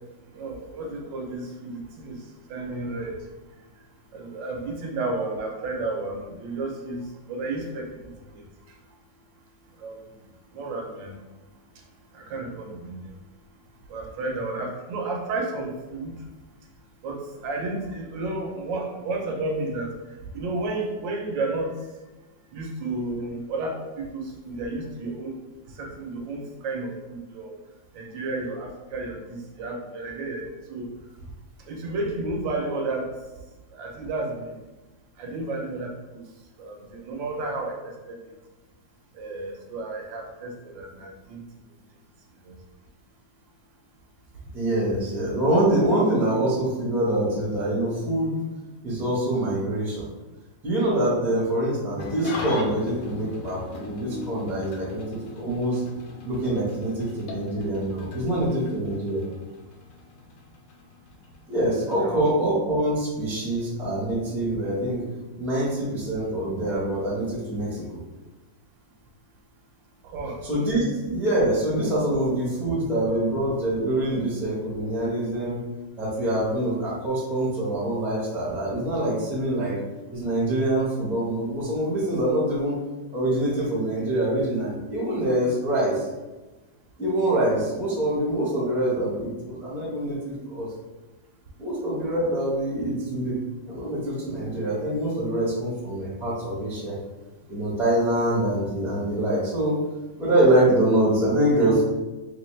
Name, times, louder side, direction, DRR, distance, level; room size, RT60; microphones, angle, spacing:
voice 1, 0.3-2.2 2.5-3.2 4.1-7.0 7.3-8.4 9.8-10.0 10.5-11.2 12.1-13.0 13.9-16.1 17.0-19.9 20.3-21.7 22.5-25.4 25.8-27.5 27.9-30.9 31.7-33.1 33.7-34.5 35.2-35.9 36.6-38.2 39.1-41.4 42.5-42.6 62.0-62.2 70.1-70.4, right 2 dB, 80° right, 1 dB, 1.3 m, -32 dB
voice 2, 44.5-48.4 48.8-50.1 50.6-55.8 56.2-59.2 61.5-65.0 65.4-68.0 70.4-75.6 76.0-79.7 80.1-82.8 83.1-86.1 87.0-90.7 91.6-93.4 93.7-97.0 97.5-99.8 100.2-101.8, right 1 dB, ahead, -7 dB, 0.7 m, -25 dB
Engine starting / Idling, 52.0-62.6, left 4 dB, 70° left, 0.8 m, -40 dB
3.2 x 3.0 x 3.1 m, 1.1 s
omnidirectional pair, 2.0 m